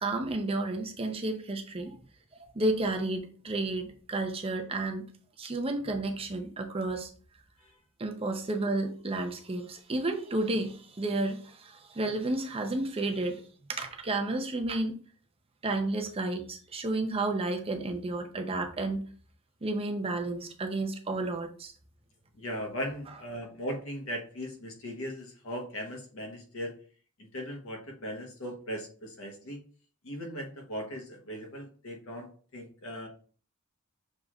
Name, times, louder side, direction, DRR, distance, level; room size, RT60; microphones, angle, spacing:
voice 1, 0.0-2.0 2.3-5.1 5.4-7.1 8.0-13.4 13.7-15.0 15.6-19.0 19.6-21.7, right 2 dB, 25° right, 4 dB, 0.6 m, -31 dB
voice 2, 22.3-26.7 27.2-29.6 30.0-33.1, equal, 65° left, 2 dB, 1.1 m, -38 dB
6.4 x 3.0 x 2.4 m, 0.42 s
head